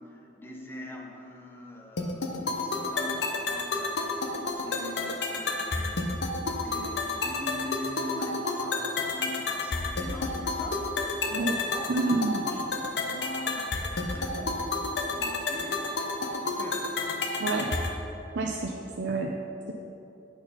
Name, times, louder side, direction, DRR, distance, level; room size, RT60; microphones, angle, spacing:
voice 1, 0.0-6.1 6.6-10.8 11.4-16.9 17.2-17.6, left 1 dB, 10° left, -1 dB, 0.8 m, -43 dB
sound 1, 2.0-18.0, left 3 dB, 65° left, 0.7 m, -31 dB
voice 2, 11.9-12.4 17.4-17.7 18.3-19.3, right 3 dB, 80° right, 0 dB, 0.6 m, -28 dB
8.8 x 4.4 x 5.6 m, 2.9 s
head